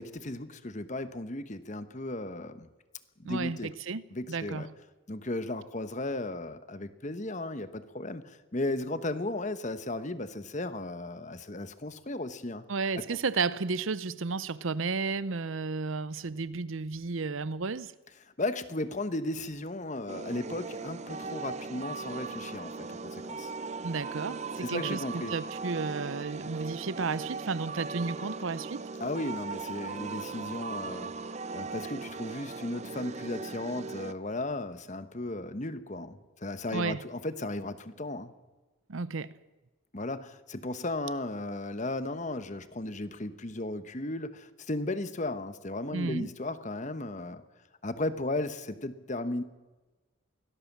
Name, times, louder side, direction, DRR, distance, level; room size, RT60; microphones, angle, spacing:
voice 1, 0.0-2.7 3.2-3.7 4.1-4.7 5.1-12.6 13.1-13.2 18.4-23.5 24.6-25.3 29.0-31.1 31.5-38.3 39.9-47.4 47.8-49.4, left 2 dB, 35° left, 1.1 m, -35 dB
voice 2, 3.2-4.0 4.3-4.7 12.7-17.9 23.8-28.9 36.7-37.0 38.9-39.3 45.9-46.3, right 4 dB, 70° right, 0.7 m, -33 dB
sound 1, 20.1-34.1, right 4 dB, 30° right, 0.6 m, -38 dB
23.0 x 17.0 x 7.4 m
head